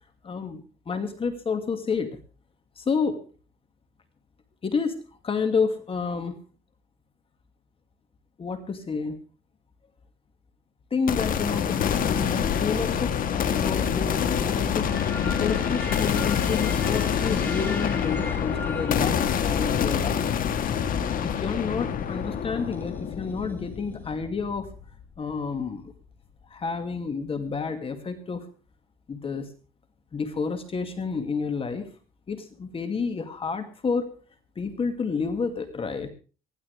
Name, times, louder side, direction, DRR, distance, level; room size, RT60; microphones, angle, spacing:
voice 1, 0.2-2.2 2.8-3.2 4.6-5.0 5.2-6.4 8.4-9.2 10.9-20.3 21.2-24.7 25.2-25.9 26.5-28.5 29.1-29.5 30.1-31.9 32.3-34.1 34.6-36.1, left 5 dB, 35° left, 8 dB, 2.2 m, -30 dB
sound 1, 11.1-25.0, left 8 dB, 55° left, 1.7 m, -26 dB
sound 2, 11.5-24.1, left 1 dB, 10° left, 4.3 m, -42 dB
Bass guitar, 14.9-21.1, left 13 dB, 85° left, 4.7 m, -42 dB
20.0 x 15.0 x 3.5 m, 0.36 s
cardioid pair, 110°, 17 cm